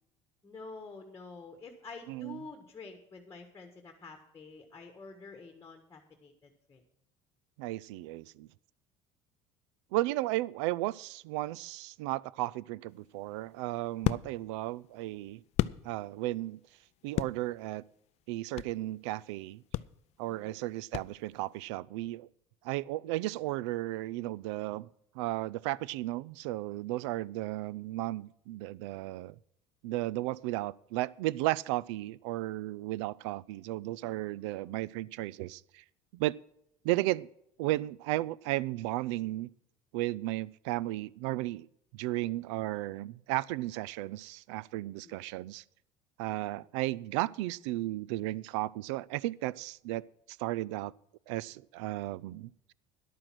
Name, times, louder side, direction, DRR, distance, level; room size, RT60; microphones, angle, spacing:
voice 1, 0.4-6.8 20.3-20.6 34.6-34.7 45.0-45.3, left 4 dB, 20° left, 5 dB, 1.5 m, -48 dB
voice 2, 2.1-2.4 7.6-8.5 9.9-15.4 15.8-16.6 17.0-17.8 18.3-19.6 20.2-22.3 22.6-24.9 25.1-29.4 29.8-35.8 36.1-36.4 36.8-37.3 37.6-39.5 39.9-41.7 41.9-45.6 46.2-50.0 50.4-50.9 51.3-52.7, right 17 dB, 90° right, 23 dB, 0.4 m, -34 dB
sound 1, 12.9-16.4 16.7-18.9 19.2-19.4 19.7-21.5, left 14 dB, 50° left, 0.4 m, -35 dB
11.0 x 8.9 x 6.1 m, 0.74 s
cardioid pair, 120°, 14 cm